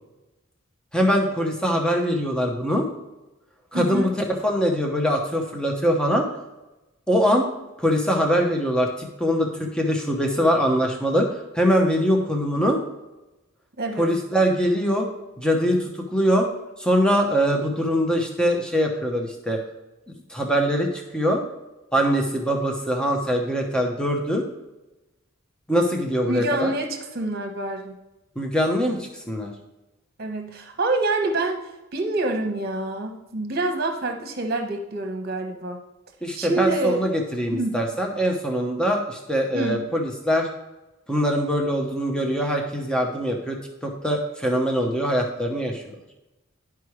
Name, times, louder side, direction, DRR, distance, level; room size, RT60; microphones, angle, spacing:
voice 1, 0.9-2.9 3.7-4.1 4.4-6.3 7.1-7.4 7.8-11.3 11.5-12.8 14.0-15.1 15.4-15.8 16.1-16.5 16.8-19.6 20.3-21.4 21.9-24.4 25.7-26.7 28.4-29.5 36.2-40.5 41.1-43.6 43.8-45.8, equal, 5° left, 1 dB, 0.9 m, -22 dB
voice 2, 3.7-4.1 13.8-14.1 26.2-28.0 30.2-31.6 31.9-35.8 36.3-37.0 37.5-37.8 39.5-39.9, right 2 dB, 45° right, 4 dB, 1.1 m, -26 dB
11.0 x 4.7 x 3.1 m, 1.0 s
head